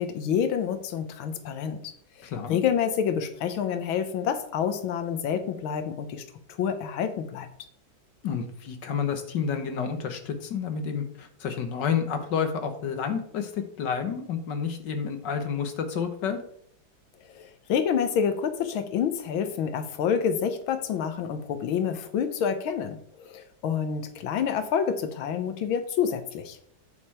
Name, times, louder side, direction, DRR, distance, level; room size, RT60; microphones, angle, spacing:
voice 1, 0.0-1.8 2.2-6.2 6.6-7.5 17.4-26.6, left 7 dB, 85° left, 8 dB, 1.7 m, -28 dB
voice 2, 2.2-2.6 8.2-16.4, left 6 dB, 65° left, 7 dB, 1.7 m, -30 dB
9.2 x 6.9 x 4.3 m, 0.65 s
omnidirectional pair, 2.2 m